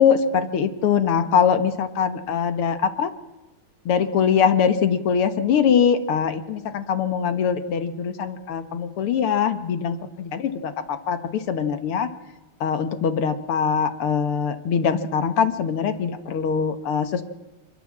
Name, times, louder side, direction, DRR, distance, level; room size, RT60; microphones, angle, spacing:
voice 1, 0.0-3.1 3.9-12.1 12.6-17.2, left 7 dB, 80° left, 9 dB, 2.3 m, -22 dB
24.5 x 22.5 x 7.5 m, 1.1 s
omnidirectional pair, 2.4 m